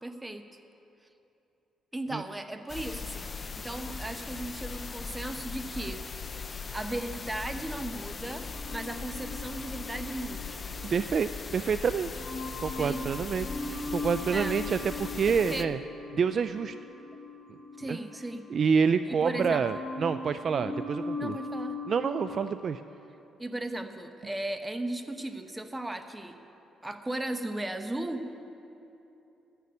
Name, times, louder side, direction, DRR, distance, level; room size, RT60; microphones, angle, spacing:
voice 1, 0.0-0.4 1.9-6.0 6.7-10.6 12.8-13.0 14.3-14.6 15.3-15.7 17.8-18.4 19.1-19.6 21.2-21.8 23.4-26.4 26.8-28.4, right 1 dB, 15° right, 7 dB, 0.9 m, -36 dB
sound 1, 2.7-15.6, left 5 dB, 35° left, 0.5 m, -39 dB
sound 2, 8.4-11.6 12.1-18.9 19.2-22.5, left 3 dB, 70° left, 3.1 m, -40 dB
voice 2, 10.8-12.1 12.6-15.8 16.1-16.7 17.9-18.0 18.5-21.4 21.9-22.8, right 6 dB, 50° right, 11 dB, 0.3 m, -28 dB
12.5 x 6.8 x 9.5 m, 2.9 s
cardioid pair, 90°, 0 cm